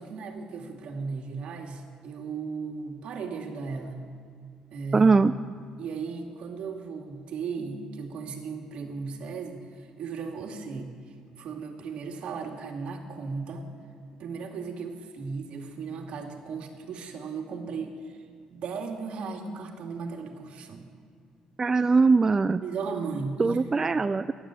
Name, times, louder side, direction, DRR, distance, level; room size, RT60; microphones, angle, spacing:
voice 1, 0.0-4.1 4.7-5.3 5.8-10.9 11.4-13.7 14.2-18.2 18.5-20.9 22.6-23.6, right 5 dB, 65° right, 2 dB, 2.3 m, -36 dB
voice 2, 4.9-5.3 21.6-22.6 23.4-24.3, right 4 dB, 25° right, 11 dB, 0.4 m, -21 dB
15.0 x 11.5 x 7.7 m, 2.2 s
cardioid pair, 100°, 2 cm